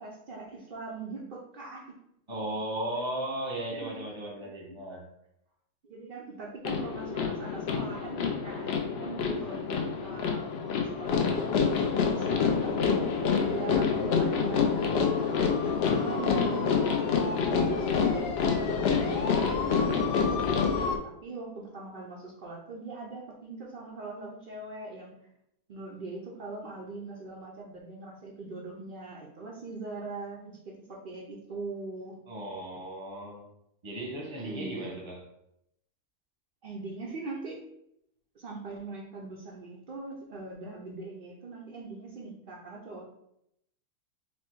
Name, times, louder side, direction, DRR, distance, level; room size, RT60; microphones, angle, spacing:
voice 1, 0.0-1.9 3.7-4.0 4.3-4.4 5.9-13.0 13.4-16.8 17.4-25.1 25.7-32.1 34.3-35.0 36.6-37.6 38.3-43.1, right 3 dB, 75° right, -3 dB, 0.4 m, -41 dB
voice 2, 2.3-5.1 32.3-33.4 33.8-35.3, right 1 dB, 25° right, -1 dB, 0.6 m, -36 dB
sound 1, 6.6-21.0, left 5 dB, 80° left, 0.5 m, -27 dB
4.2 x 2.1 x 4.4 m, 0.78 s
omnidirectional pair, 1.7 m